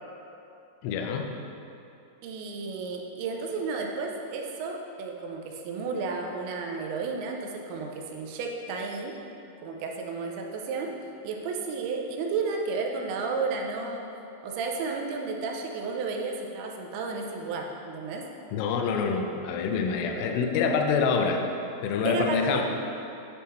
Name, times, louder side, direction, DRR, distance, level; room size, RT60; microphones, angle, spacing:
voice 1, 0.8-1.3 18.5-21.4 21.8-22.6, left 5 dB, 80° left, 3 dB, 2.3 m, -26 dB
voice 2, 2.2-9.2 9.6-10.9 11.2-14.0 14.4-18.3 22.0-22.6, right 4 dB, 90° right, 1 dB, 2.6 m, -32 dB
10.0 x 3.6 x 4.2 m, 2.8 s
omnidirectional pair, 4.5 m